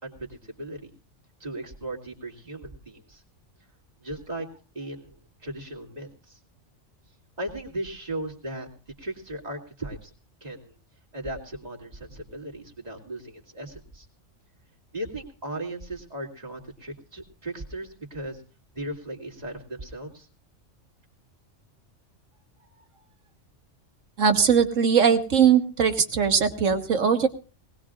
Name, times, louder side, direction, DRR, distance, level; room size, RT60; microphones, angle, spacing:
voice 1, 0.0-0.9 1.4-3.2 4.0-4.5 4.7-5.2 5.4-6.4 7.4-8.7 9.0-10.1 10.4-10.7 11.1-14.1 14.9-18.4 18.7-20.3, right 1 dB, 30° right, 0 dB, 2.8 m, -37 dB
voice 2, 24.2-27.3, right 7 dB, 85° right, 7 dB, 1.8 m, -20 dB
20.0 x 19.0 x 2.5 m, 0.37 s
omnidirectional pair, 1.3 m